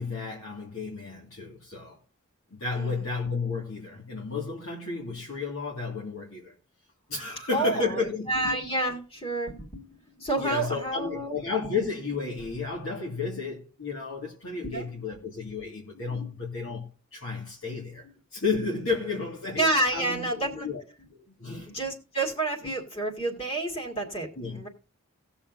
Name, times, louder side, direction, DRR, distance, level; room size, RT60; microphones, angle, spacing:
voice 1, 0.0-2.0 2.5-6.5 7.1-8.3 10.4-20.8 21.1-21.8 24.4-24.6, left 4 dB, 70° left, 2.1 m, -32 dB
voice 2, 7.5-11.4 14.6-14.9 16.1-16.3 19.5-20.7 21.7-24.7, right 2 dB, 25° left, 2.1 m, -29 dB
18.5 x 6.9 x 2.7 m
head